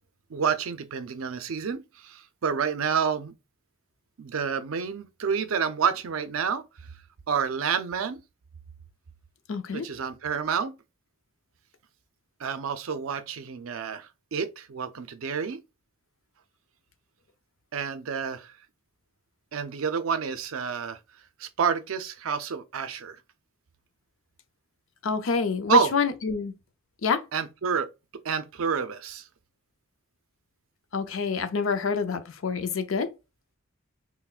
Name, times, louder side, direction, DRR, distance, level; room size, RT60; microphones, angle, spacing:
voice 1, 0.3-3.3 4.2-6.6 7.3-8.2 9.7-10.7 12.4-15.6 17.7-18.5 19.5-21.0 21.4-23.2 25.7-25.9 27.3-27.9 28.2-29.3, right 6 dB, 70° right, 0.5 m, -29 dB
voice 2, 9.5-9.9 25.0-26.5 27.0-27.2 30.9-33.1, left 5 dB, 65° left, 0.5 m, -27 dB
5.7 x 2.1 x 2.4 m
head